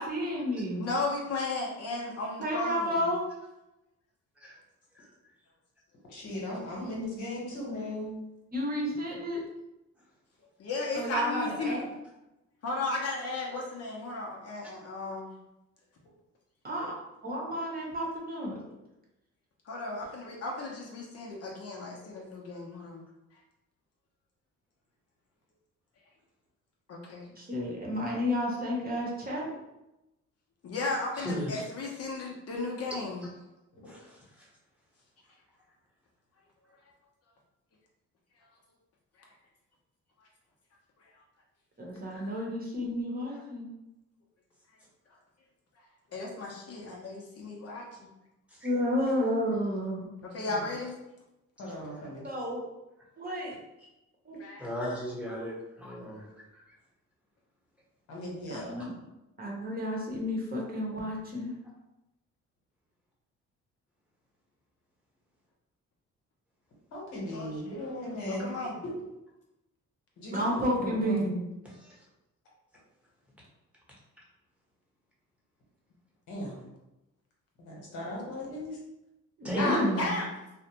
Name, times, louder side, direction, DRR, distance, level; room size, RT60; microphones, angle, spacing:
voice 1, 0.0-0.8 2.4-3.2 8.5-9.4 10.9-11.8 16.6-16.9 17.2-18.6 27.4-29.5 41.8-43.7 48.6-50.1 52.2-52.6 53.2-53.6 54.3-54.4 58.5-58.9 59.4-61.5 70.3-71.4 79.4-80.1, equal, 30° right, -2 dB, 0.8 m, -31 dB
voice 2, 0.7-3.1 10.6-11.8 12.6-15.3 19.7-23.0 26.9-27.3 30.6-33.2 42.1-42.3 46.1-47.9 50.2-50.9 54.4-55.0 55.4-55.5 67.3-67.8 68.3-68.8 79.5-80.3, left 2 dB, 55° left, -2 dB, 0.6 m, -35 dB
voice 3, 6.1-8.1 50.4-50.5 51.6-52.2 58.1-58.8 66.9-68.4 68.8-68.9 70.2-71.3 76.3-76.6 77.6-78.8, left 1 dB, 75° left, -3 dB, 1.0 m, -37 dB
voice 4, 31.2-31.5 33.9-34.5 43.3-43.4 48.6-48.7 54.6-56.4 58.5-58.7 71.8-71.9 79.4-79.8, equal, 5° right, -6 dB, 0.9 m, -37 dB
2.4 x 2.1 x 2.9 m, 0.94 s
cardioid pair, 90°, 30 cm